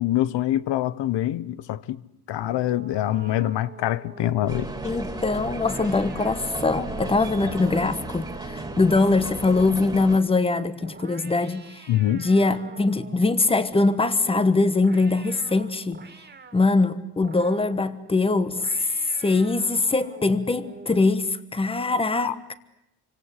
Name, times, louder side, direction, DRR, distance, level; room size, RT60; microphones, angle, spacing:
voice 1, 0.0-2.0 2.3-4.7 7.4-7.5 11.9-12.3 22.2-22.3, left 13 dB, 80° left, 1.1 m, -25 dB
sound 1, 2.4-10.2 10.8-13.3 13.7-16.7 17.2-17.9 18.5-21.3, right 4 dB, 25° right, 2.5 m, -45 dB
sound 2, 4.5-10.2, right 2 dB, 10° right, 2.7 m, -34 dB
voice 2, 4.8-11.9 12.1-16.0 16.5-18.9 19.2-22.5, left 3 dB, 15° left, 1.3 m, -22 dB
28.5 x 25.5 x 8.3 m
cardioid pair, 170°, 42 cm